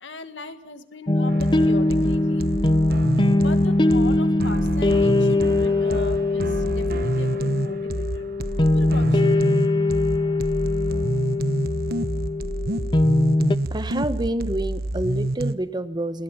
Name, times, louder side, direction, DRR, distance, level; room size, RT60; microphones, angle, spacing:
voice 1, 0.0-2.5 3.3-8.3 8.7-9.4, left 2 dB, 80° left, 2.1 m, -38 dB
sound 1, 1.1-13.6, left 2 dB, 25° left, 0.8 m, -21 dB
sound 2, 1.3-15.5, right 2 dB, 60° right, 1.1 m, -28 dB
voice 2, 13.4-16.2, right 1 dB, 25° right, 1.3 m, -28 dB
27.5 x 21.0 x 5.8 m
head